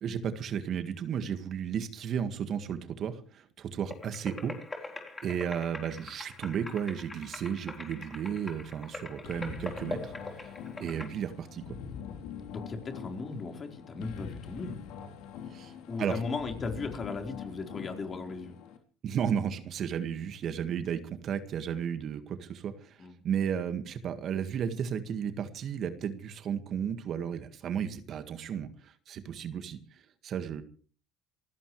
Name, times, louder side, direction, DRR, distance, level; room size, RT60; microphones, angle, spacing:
voice 1, 0.0-5.0 5.2-10.5 10.8-11.8 15.5-15.7 16.0-16.2 19.0-30.6, right 8 dB, 50° right, 10 dB, 1.8 m, -34 dB
sound 1, 3.9-11.1, left 3 dB, 20° left, 4.0 m, -43 dB
sound 2, 9.2-18.8, left 7 dB, 70° left, 3.1 m, -44 dB
voice 2, 12.5-14.8 15.9-18.5 23.0-23.2, left 4 dB, 35° left, 4 dB, 4.3 m, -37 dB
27.5 x 15.0 x 3.3 m, 0.42 s
supercardioid pair, 80°, 0 cm